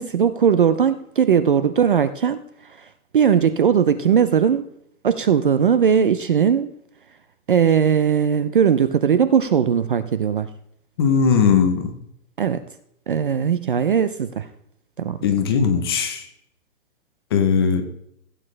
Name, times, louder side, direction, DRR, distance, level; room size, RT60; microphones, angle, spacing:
voice 1, 0.0-4.6 5.0-6.7 7.5-10.5 12.4-12.6 13.1-14.5 15.0-15.2, right 7 dB, 40° right, 13 dB, 0.4 m, -19 dB
voice 2, 11.0-11.9 15.2-16.3 17.3-17.8, left 6 dB, 20° left, 7 dB, 0.6 m, -18 dB
16.0 x 8.8 x 3.2 m, 0.74 s
hypercardioid pair, 165°, 43 cm